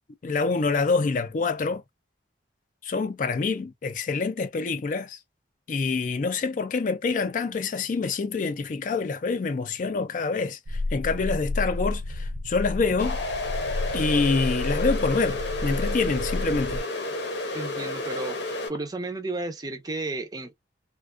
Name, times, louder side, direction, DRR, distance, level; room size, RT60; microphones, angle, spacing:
voice 1, 0.2-1.8 2.8-5.2 5.7-13.2 13.9-16.8, left 4 dB, 45° left, 0.3 m, -26 dB
sound 1, 10.7-16.8, left 2 dB, 75° right, 0.4 m, -31 dB
sound 2, 13.0-18.7, left 2 dB, 75° left, 0.8 m, -31 dB
voice 2, 17.5-18.4 18.7-20.5, right 2 dB, 20° right, 0.4 m, -33 dB
2.4 x 2.2 x 2.4 m
head